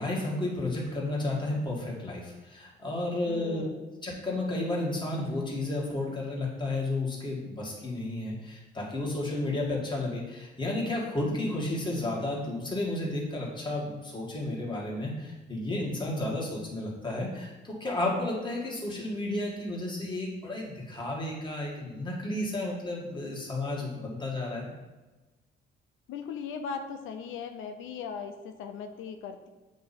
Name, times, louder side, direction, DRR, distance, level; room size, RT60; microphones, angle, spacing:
voice 1, 0.0-3.6 4.0-24.7, left 2 dB, 25° left, -3 dB, 1.9 m, -32 dB
voice 2, 3.3-4.0 26.1-29.5, left 6 dB, 90° left, 7 dB, 0.5 m, -38 dB
8.1 x 2.8 x 4.2 m, 1.2 s
cardioid pair, 90°, 20 cm